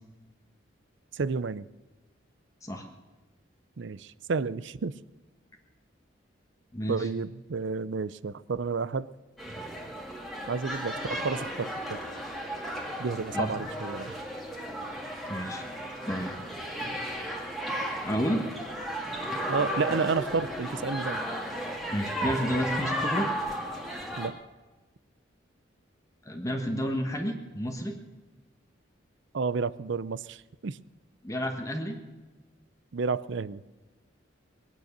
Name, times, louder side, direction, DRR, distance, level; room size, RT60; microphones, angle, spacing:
voice 1, 1.1-1.7 3.8-4.9 6.9-9.1 10.5-12.0 13.0-14.2 19.5-21.2 24.2-24.4 29.3-30.8 32.9-33.6, right 4 dB, 70° right, 18 dB, 0.5 m, -31 dB
voice 2, 6.7-7.1 13.3-13.5 15.3-15.7 16.1-16.3 18.0-18.4 21.9-23.3 26.2-28.0 31.2-32.0, equal, 15° left, 3 dB, 1.3 m, -30 dB
sound 1, 9.4-24.3, equal, ahead, 2.0 m, -34 dB
22.0 x 9.3 x 6.7 m, 1.2 s
head